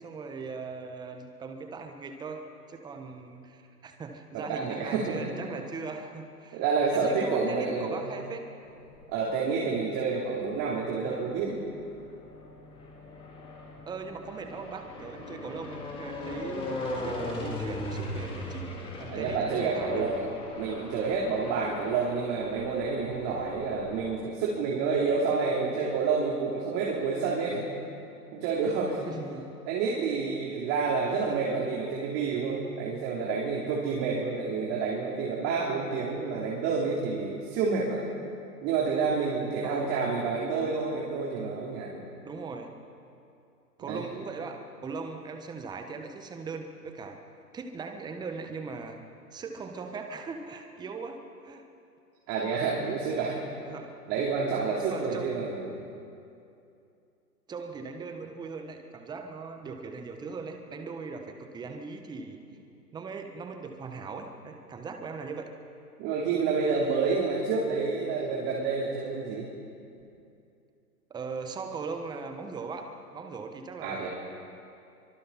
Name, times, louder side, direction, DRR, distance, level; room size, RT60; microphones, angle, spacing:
voice 1, 0.0-6.6 6.9-8.5 13.9-18.7 19.0-20.0 29.1-29.5 39.6-40.0 42.2-42.8 43.8-47.2 47.5-49.0 49.3-51.7 53.7-53.9 54.8-55.3 57.5-62.4 62.9-65.5 71.1-74.1, right 4 dB, 10° right, 5 dB, 1.3 m, -39 dB
voice 2, 4.3-5.3 6.5-8.1 9.1-11.6 19.1-20.2 20.6-27.7 28.3-29.1 29.7-38.0 38.6-42.0 43.8-44.1 52.3-53.4 54.1-55.7 66.0-69.5 73.8-74.1, right 4 dB, 30° right, -3 dB, 3.6 m, -29 dB
sound 1, 8.6-9.4 10.1-24.2, left 1 dB, 10° left, 4.0 m, -39 dB
29.5 x 24.5 x 4.3 m, 2.6 s
figure-of-eight pair, 125°, 49 cm